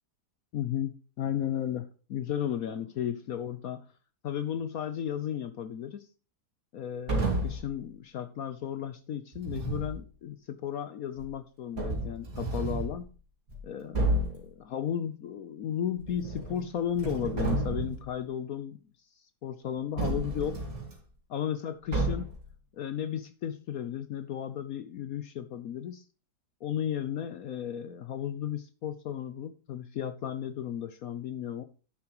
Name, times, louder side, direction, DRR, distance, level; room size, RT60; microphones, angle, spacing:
voice 1, 0.5-3.9 4.2-6.1 6.7-13.1 13.6-18.8 19.4-20.6 21.3-22.3 22.7-26.0 26.6-31.6, left 9 dB, 65° left, 1.0 m, -34 dB
sound 1, 7.1-7.7 9.3-10.0 11.2-11.3 11.8-13.0 13.5-13.6 13.9-14.4 16.0-16.6 16.9-18.1 20.0-20.9 21.9-22.4, right 2 dB, 55° right, 3.1 m, -31 dB
11.0 x 7.0 x 3.0 m
omnidirectional pair, 1.9 m